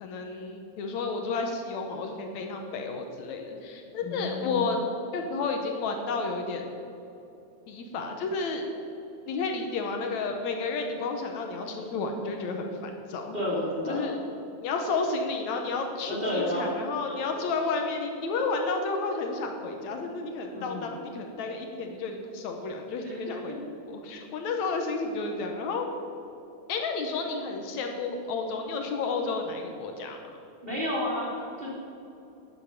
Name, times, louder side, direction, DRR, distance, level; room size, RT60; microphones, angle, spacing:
voice 1, 0.0-4.8 5.1-6.7 7.7-8.6 9.3-13.4 13.9-14.2 14.6-23.5 23.9-25.9 26.7-30.2, left 4 dB, 75° left, 4 dB, 2.2 m, -31 dB
voice 2, 4.0-4.7 13.3-14.2 14.9-15.0 16.0-16.7 17.1-17.2 20.5-21.0 23.0-23.6 30.6-31.7, left 1 dB, 20° right, -5 dB, 2.5 m, -32 dB
11.5 x 8.9 x 5.8 m, 2.8 s
omnidirectional pair, 3.4 m